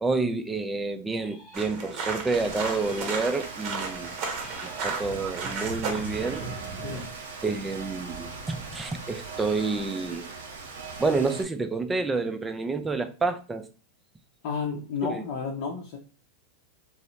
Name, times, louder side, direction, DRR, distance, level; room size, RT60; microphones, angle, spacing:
voice 1, 0.0-4.1 4.6-6.5 7.4-10.3 11.0-13.7 15.0-15.2, right 3 dB, 15° right, 0.4 m, -29 dB
sound 1, 1.1-2.1 2.7-3.8 4.3-5.5, left 1 dB, 20° left, 1.0 m, -51 dB
sound 2, 1.5-7.0, right 4 dB, 45° right, 0.9 m, -34 dB
Rain, 2.3-11.4, right 4 dB, 80° right, 0.7 m, -40 dB
voice 2, 14.4-16.0, left 5 dB, 55° left, 0.6 m, -31 dB
2.6 x 2.0 x 3.0 m
hypercardioid pair, 110°, 0 cm